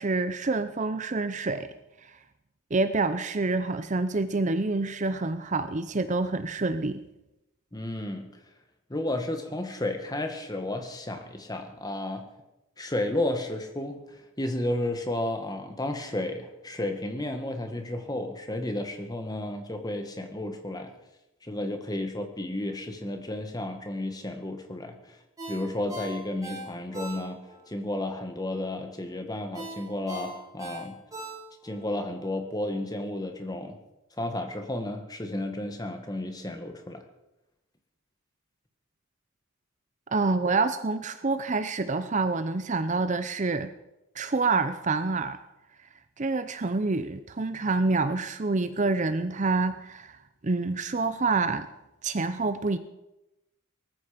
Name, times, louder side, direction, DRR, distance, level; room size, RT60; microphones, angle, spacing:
voice 1, 0.0-1.7 2.0-2.2 2.7-7.0 40.1-43.7 44.1-45.4 46.2-51.7 52.0-52.8, right 3 dB, 35° right, 11 dB, 0.6 m, -27 dB
voice 2, 7.7-8.3 8.9-12.3 12.8-20.9 21.4-25.2 25.5-27.4 27.7-31.0 31.6-33.8 34.2-37.0, left 1 dB, 20° left, 6 dB, 1.7 m, -32 dB
Ringtone, 25.4-27.6 28.0-28.1 29.5-31.8 32.2-32.3, right 1 dB, 15° right, 7.8 m, -40 dB
19.0 x 14.0 x 5.2 m, 0.93 s
head